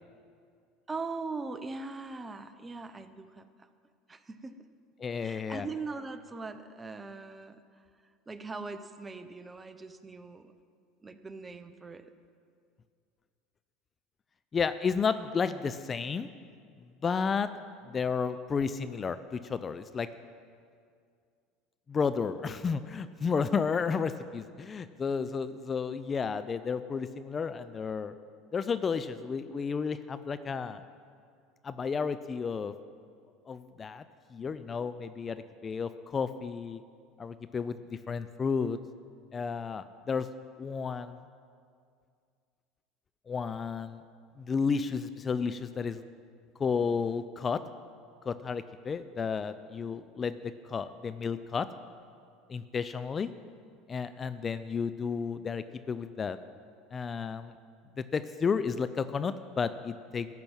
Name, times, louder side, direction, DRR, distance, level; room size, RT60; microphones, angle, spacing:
voice 1, 0.9-3.7 4.1-4.7 5.2-7.6 8.3-10.5 11.0-12.1, right 3 dB, 20° right, 11 dB, 0.8 m, -41 dB
voice 2, 5.0-5.7 14.5-16.3 17.0-17.5 17.9-20.1 21.9-28.1 28.5-30.8 31.6-32.7 33.5-34.0 34.3-36.8 37.2-38.8 39.3-40.3 40.6-41.2 43.3-44.0 44.4-46.0 46.6-47.6 48.2-51.7 52.5-53.3 53.9-56.4 56.9-57.5 58.0-60.3, left 5 dB, 30° left, 12 dB, 0.5 m, -32 dB
14.0 x 6.0 x 8.8 m, 2.2 s
hypercardioid pair, 85°, 0 cm